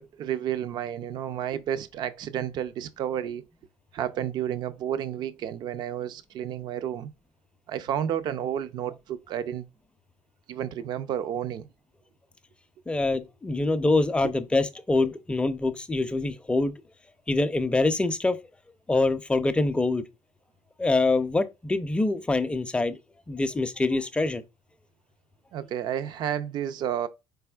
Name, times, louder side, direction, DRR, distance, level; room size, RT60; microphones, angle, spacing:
voice 1, 0.0-3.4 3.9-7.1 7.7-9.7 10.5-11.7 25.5-27.1, right 10 dB, 60° right, 0.4 m, -31 dB
voice 2, 12.9-16.7 17.3-18.4 18.9-20.0 20.8-23.0 23.3-24.4, left 2 dB, 15° left, 0.4 m, -25 dB
4.1 x 3.4 x 2.3 m
supercardioid pair, 95°, 8 cm